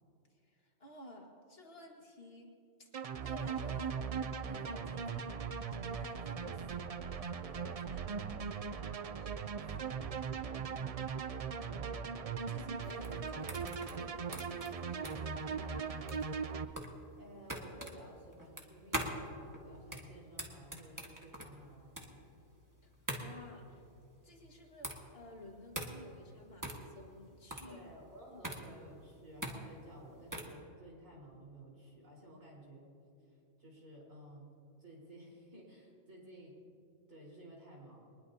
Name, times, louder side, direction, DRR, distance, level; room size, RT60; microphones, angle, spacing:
voice 1, 0.3-2.5 2.8-2.9 3.2-10.9 11.7-12.1 12.5-16.1 22.8-23.8 24.2-27.8, left 1 dB, 50° left, 0 dB, 2.1 m, -54 dB
sound 1, 2.9-16.6, right 6 dB, 55° right, 0.4 m, -39 dB
voice 2, 10.5-10.9 17.2-22.2 27.6-32.9 33.3-34.5 34.8-36.6 37.1-38.1, right 1 dB, 85° right, -4 dB, 4.9 m, -54 dB
sound 2, 12.8-30.6, right 1 dB, 15° right, 1.5 m, -44 dB
23.0 x 20.0 x 2.8 m, 2.5 s
omnidirectional pair, 1.3 m